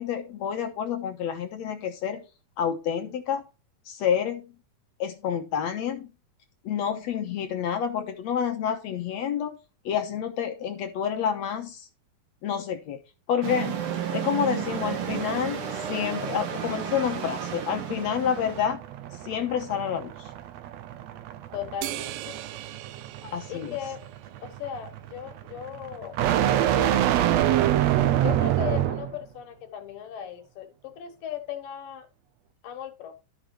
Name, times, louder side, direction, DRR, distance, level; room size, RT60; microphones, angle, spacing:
voice 1, 0.0-2.2 2.6-3.4 3.9-4.5 5.0-6.1 6.7-9.6 9.9-11.9 12.4-13.0 13.3-13.8 14.1-18.8 19.2-20.1 23.2-23.8, left 8 dB, 65° left, 5 dB, 2.0 m, -28 dB
sound 1, 13.4-18.6, right 8 dB, 55° right, 1.7 m, -32 dB
sound 2, 14.6-29.2, right 12 dB, 75° right, 1.7 m, -27 dB
voice 2, 21.5-22.4 23.5-24.0 24.4-26.2 28.0-32.1 32.6-33.2, left 10 dB, 80° left, 6 dB, 2.9 m, -37 dB
sound 3, 21.8-24.5, right 14 dB, 90° right, 2.3 m, -39 dB
12.0 x 6.6 x 3.1 m, 0.31 s
omnidirectional pair, 3.9 m